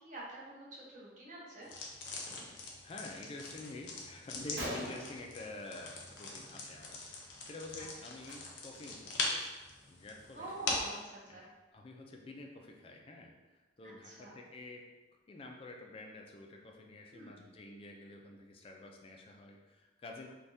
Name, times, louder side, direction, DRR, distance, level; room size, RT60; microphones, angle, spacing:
voice 1, 0.0-1.7 10.3-11.5 13.8-14.4 17.1-17.5, right 2 dB, 45° right, -6 dB, 0.7 m, -47 dB
sound 1, 1.6-11.0, left 3 dB, 80° left, 0.6 m, -42 dB
voice 2, 2.8-9.6 9.9-10.5 11.3-14.9 15.3-20.3, left 2 dB, 30° left, 2 dB, 0.3 m, -49 dB
Gunshot gunfire, 4.6-6.2 6.5-6.9 7.1-7.3 8.1-8.3 8.9-9.0 9.4-11.0, equal, 85° right, 0.7 m, -45 dB
3.3 x 2.3 x 2.6 m, 1.2 s
head